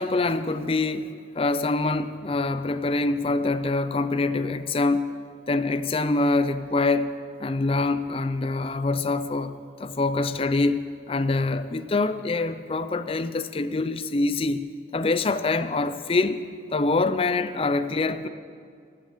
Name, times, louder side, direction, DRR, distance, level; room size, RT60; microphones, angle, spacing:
voice 1, 0.0-5.1 5.5-7.1 7.4-14.7 14.9-16.4 16.7-18.3, left 3 dB, 30° left, 13 dB, 0.5 m, -25 dB
13.0 x 12.0 x 7.5 m, 2.2 s
head